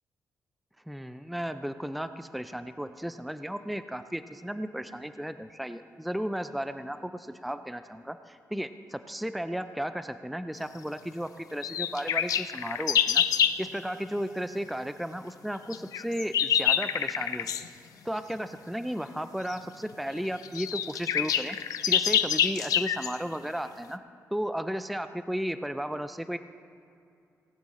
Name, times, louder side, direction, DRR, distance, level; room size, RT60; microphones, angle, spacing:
voice 1, 0.9-13.2 13.6-17.5 18.0-21.6 21.9-24.0 24.3-26.4, equal, ahead, 10 dB, 0.3 m, -34 dB
sound 1, 11.6-13.6 15.7-17.7 19.5-19.6 20.2-20.3 20.4-23.2, left 9 dB, 85° left, 0.5 m, -26 dB
18.5 x 8.9 x 4.2 m, 2.5 s
wide cardioid pair, 170°, 6 cm